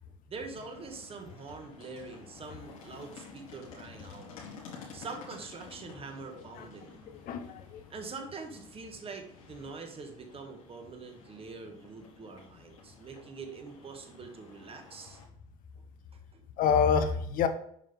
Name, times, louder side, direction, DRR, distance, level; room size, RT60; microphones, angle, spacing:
voice 1, 0.3-4.3 4.9-7.0 7.9-15.2 15.8-15.9 16.3-16.4, right 4 dB, 35° right, 4 dB, 1.7 m, -44 dB
sound 1, 0.5-15.2, left 5 dB, 85° left, 2.1 m, -52 dB
voice 2, 7.3-7.8 16.6-17.5, left 7 dB, 55° left, 8 dB, 0.9 m, -26 dB
7.5 x 5.4 x 3.5 m, 0.67 s
hypercardioid pair, 70°, 17 cm